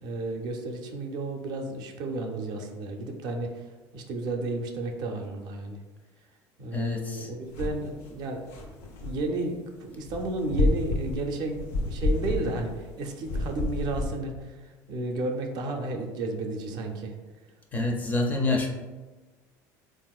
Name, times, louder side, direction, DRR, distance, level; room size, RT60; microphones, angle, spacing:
voice 1, 0.0-3.7 3.9-5.8 6.6-17.1, right 2 dB, 55° right, 3 dB, 0.4 m, -33 dB
voice 2, 6.7-7.3 17.7-18.7, left 2 dB, 20° left, 1 dB, 0.4 m, -27 dB
sound 1, 7.6-7.9 8.2-9.2 10.0-12.9 13.2-14.1, left 2 dB, 85° left, 0.5 m, -29 dB
3.5 x 2.5 x 2.3 m, 1.3 s
cardioid pair, 130°, 8 cm